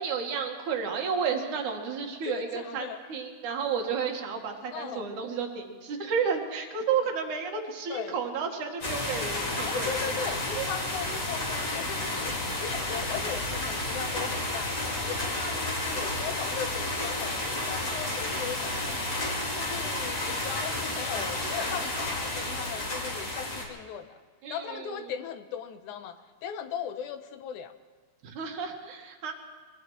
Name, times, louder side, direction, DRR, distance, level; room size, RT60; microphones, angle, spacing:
voice 1, 0.0-9.9 10.6-10.7 24.4-24.9 28.2-29.3, right 6 dB, 90° right, 2 dB, 3.0 m, -32 dB
voice 2, 2.3-3.0 4.7-5.1 7.9-8.2 9.6-12.3 12.6-18.9 19.5-24.2 24.5-26.2 26.4-27.7, left 8 dB, 80° left, 9 dB, 2.3 m, -38 dB
sound 1, 8.8-23.6, left 2 dB, 50° left, 3.8 m, -31 dB
24.5 x 18.5 x 3.1 m, 1.5 s
omnidirectional pair, 3.4 m